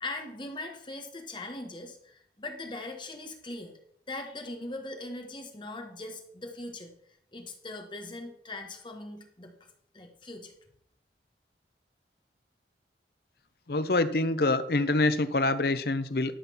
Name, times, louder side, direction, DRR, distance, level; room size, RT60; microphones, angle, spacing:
voice 1, 0.0-3.7 4.1-6.9 7.3-9.5 9.9-10.5, left 2 dB, 25° left, 4 dB, 1.5 m, -40 dB
voice 2, 13.7-16.3, left 2 dB, 55° left, 12 dB, 0.7 m, -26 dB
12.5 x 4.4 x 7.0 m, 0.70 s
head